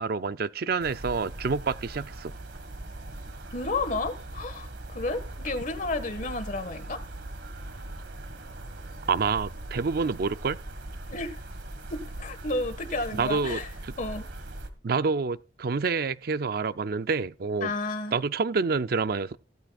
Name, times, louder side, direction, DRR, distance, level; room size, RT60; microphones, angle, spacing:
voice 1, 0.0-2.3 9.1-10.6 13.2-13.9 14.8-17.7 18.1-19.4, right 4 dB, 60° right, 0.5 m, -28 dB
sound 1, 0.8-14.7, right 1 dB, 90° right, 1.7 m, -40 dB
voice 2, 3.5-7.0 11.1-11.3 11.9-13.7 14.0-14.3 17.6-18.2, left 2 dB, 50° left, 1.6 m, -32 dB
15.5 x 13.0 x 2.4 m
head